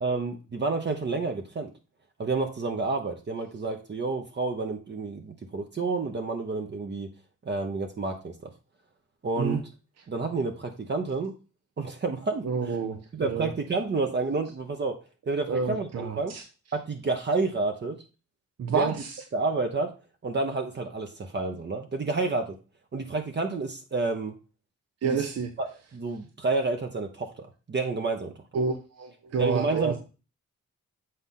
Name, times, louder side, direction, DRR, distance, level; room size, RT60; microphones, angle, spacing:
voice 1, 0.0-1.7 2.2-7.1 7.4-8.5 9.2-9.6 10.1-11.3 11.8-12.8 13.1-15.0 15.3-16.4 16.7-18.0 18.7-18.9 19.3-19.9 20.2-22.6 22.9-24.3 25.0-25.3 25.6-25.7 25.9-28.3 29.4-30.0, right 3 dB, 35° right, 4 dB, 1.0 m, -29 dB
voice 2, 12.4-13.5 15.5-16.4 18.6-19.2 25.0-25.5 28.5-30.0, right 5 dB, 55° right, 5 dB, 0.9 m, -29 dB
8.0 x 4.1 x 3.8 m, 0.33 s
cardioid pair, 90°, 30 cm